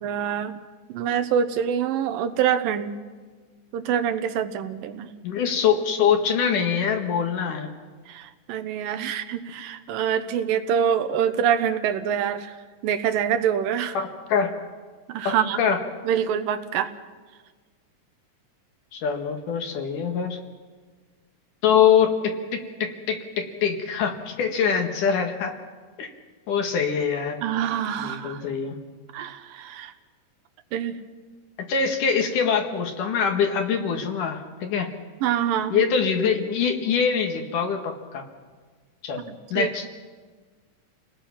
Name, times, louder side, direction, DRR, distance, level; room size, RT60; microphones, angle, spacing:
voice 1, 0.0-0.6 0.9-3.0 3.7-5.1 8.1-12.6 12.8-14.0 15.1-15.6 16.0-16.9 27.4-28.4 29.1-29.9 30.7-31.0 35.2-35.9 39.2-39.7, right 8 dB, 90° right, 9 dB, 2.7 m, -25 dB
voice 2, 5.2-7.7 13.9-14.5 15.2-15.8 18.9-20.4 21.6-25.5 26.0-26.1 26.5-27.4 28.0-28.8 31.6-34.9 35.7-38.2 39.0-39.2 39.5-39.8, left 7 dB, 70° left, 4 dB, 3.2 m, -24 dB
29.0 x 19.0 x 5.9 m, 1.5 s
omnidirectional pair, 3.9 m